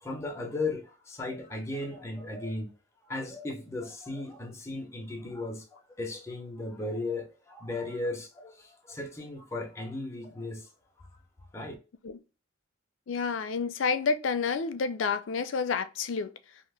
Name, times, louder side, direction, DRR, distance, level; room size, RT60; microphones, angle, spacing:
voice 1, 0.0-2.7 3.1-10.7 11.5-11.7, left 2 dB, 15° left, 0.8 m, -36 dB
voice 2, 13.1-16.3, left 5 dB, 85° left, 0.4 m, -29 dB
2.8 x 2.5 x 3.2 m
head